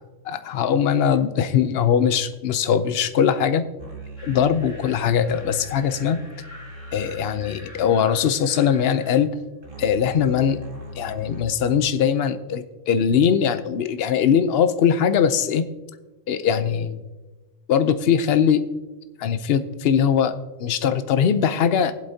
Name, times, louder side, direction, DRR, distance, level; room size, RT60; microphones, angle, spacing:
voice 1, 0.2-3.6 4.2-6.2 6.9-9.3 9.8-10.6 11.0-15.6 16.3-17.0 17.7-18.7 19.2-20.3 20.6-21.9, left 8 dB, 60° left, 11 dB, 0.9 m, -21 dB
sound 1, 3.8-11.4, equal, 50° right, 1.8 m, -41 dB
sound 2, 4.2-9.1, left 1 dB, 85° left, 3.4 m, -46 dB
20.0 x 7.9 x 2.8 m, 1.2 s
omnidirectional pair, 1.2 m